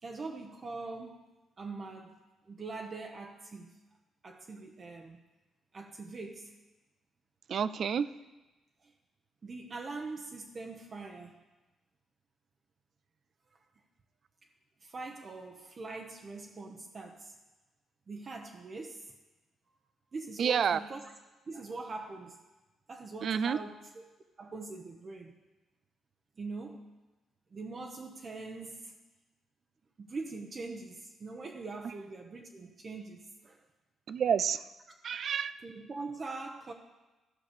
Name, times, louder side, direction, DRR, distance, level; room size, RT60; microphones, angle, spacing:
voice 1, 0.0-1.2 1.6-2.2 2.5-3.8 4.2-5.2 5.7-6.5 8.8-8.9 9.4-11.4 14.8-17.3 18.1-19.1 19.7-19.8 20.1-21.0 21.5-22.4 22.9-24.0 24.4-25.4 26.4-26.8 27.5-29.0 30.0-33.6 35.6-36.7, right 3 dB, 40° right, 2 dB, 0.9 m, -42 dB
voice 2, 7.5-8.1 20.4-20.8 23.2-23.6 34.1-34.6 35.0-35.5, right 7 dB, 55° right, 15 dB, 0.4 m, -29 dB
13.0 x 5.0 x 6.7 m, 1.1 s
cardioid pair, 90°, 0 cm